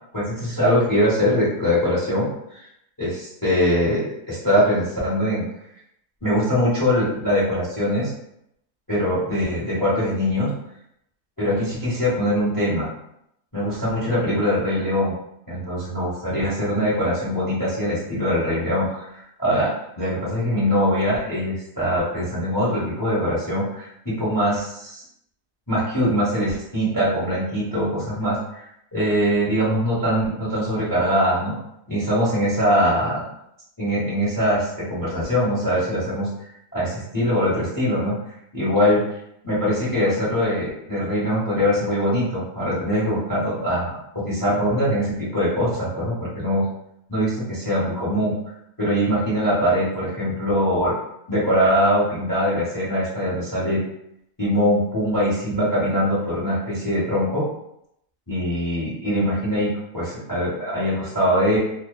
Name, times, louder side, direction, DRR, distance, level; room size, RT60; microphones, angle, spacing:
voice 1, 0.1-2.3 2.5-2.7 3.0-5.4 6.2-8.1 8.9-10.5 11.4-12.9 13.5-15.1 15.5-25.0 25.7-31.6 31.9-33.2 33.8-36.3 36.7-38.1 38.5-39.0 39.4-43.9 44.2-46.7 47.1-48.3 48.8-50.9 51.3-53.8 54.4-57.4 58.3-61.6, equal, 25° left, -8 dB, 0.5 m, -22 dB
2.8 x 2.1 x 2.2 m, 0.78 s
omnidirectional pair, 1.8 m